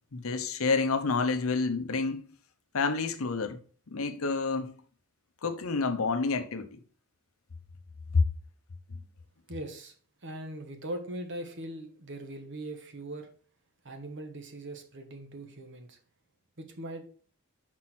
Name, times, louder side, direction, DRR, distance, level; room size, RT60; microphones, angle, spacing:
voice 1, 0.1-2.3 2.7-3.6 3.9-4.7 5.4-6.7 8.1-8.3, left 4 dB, 70° left, 0.8 m, -28 dB
voice 2, 9.5-9.9 10.2-13.3 13.8-16.0 16.6-17.0, right 1 dB, 55° right, 1.2 m, -40 dB
6.1 x 4.3 x 4.3 m
head